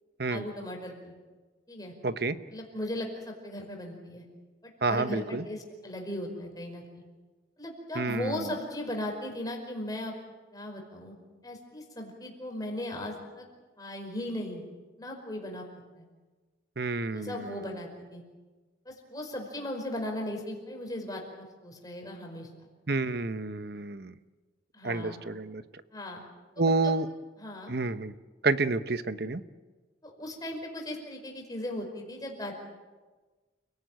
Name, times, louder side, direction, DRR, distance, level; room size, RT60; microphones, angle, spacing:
voice 1, 0.3-1.2 1.7-1.9 2.5-4.3 4.6-7.0 7.6-10.1 10.5-11.2 11.4-13.5 13.8-14.6 15.0-15.7 16.0-16.1 17.1-18.2 18.9-22.7 24.7-25.2 25.9-26.2 26.6-26.9 27.4-27.7 30.0-32.5, left 1 dB, 20° left, 1 dB, 5.2 m, -37 dB
voice 2, 2.0-2.4 4.8-5.4 7.9-8.5 16.8-17.6 22.9-24.1 24.8-25.6 26.6-27.1 27.7-28.1 28.4-29.4, right 3 dB, 55° right, 12 dB, 1.0 m, -29 dB
29.5 x 17.5 x 9.2 m, 1.3 s
head